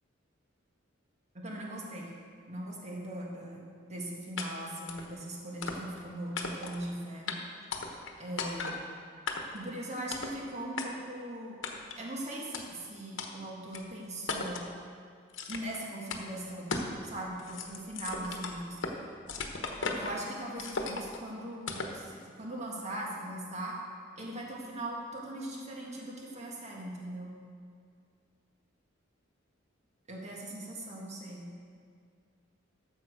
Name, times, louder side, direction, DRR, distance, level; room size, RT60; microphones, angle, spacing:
voice 1, 1.3-2.1 2.5-7.4 8.2-8.8 9.5-11.6 12.0-14.6 15.5-16.7 17.0-18.8 19.9-23.8 24.2-27.3 30.1-31.5, right 1 dB, 35° right, -2 dB, 1.7 m, -40 dB
sound 1, 4.4-4.5 4.9-5.1 5.6-6.0 6.4-6.8 7.3-7.4 7.7-8.1 8.4-8.8 9.3-9.6 10.1-10.4 10.8-10.9 11.6-12.0 12.5-12.6 13.2-13.3 13.7-13.8 14.3-14.7 15.3-15.8 16.1-16.2 16.7-17.0 17.3-19.0 19.3-20.2 20.6-21.2 21.7-22.0, left 4 dB, 70° left, 1.1 m, -36 dB
12.5 x 7.2 x 5.0 m, 2.2 s
head